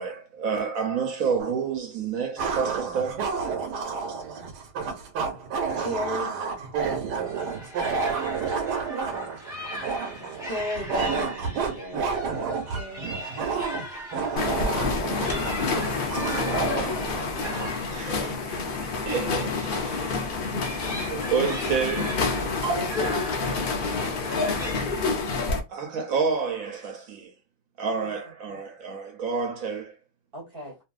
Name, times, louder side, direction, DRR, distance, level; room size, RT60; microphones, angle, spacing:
voice 1, 0.0-3.2 16.0-16.1 17.9-20.3 21.1-22.3 22.6-23.0 23.8-24.0 25.7-27.3 27.8-29.9, right 5 dB, 70° right, 1.0 m, -29 dB
sound 1, 1.4-1.5 2.4-17.8, right 5 dB, 90° right, 1.3 m, -30 dB
voice 2, 5.7-6.3 10.2-13.6 14.4-16.9, left 1 dB, 45° left, 0.7 m, -36 dB
sound 2, 7.1-25.1, equal, ahead, 1.0 m, -40 dB
sound 3, 14.4-25.6, left 4 dB, 90° left, 0.4 m, -28 dB
voice 3, 18.2-18.5 20.5-20.8 22.7-23.6 24.3-24.6 25.9-26.0 28.0-28.1 30.3-30.8, equal, 45° right, 0.8 m, -39 dB
2.6 x 2.6 x 2.3 m
omnidirectional pair, 1.7 m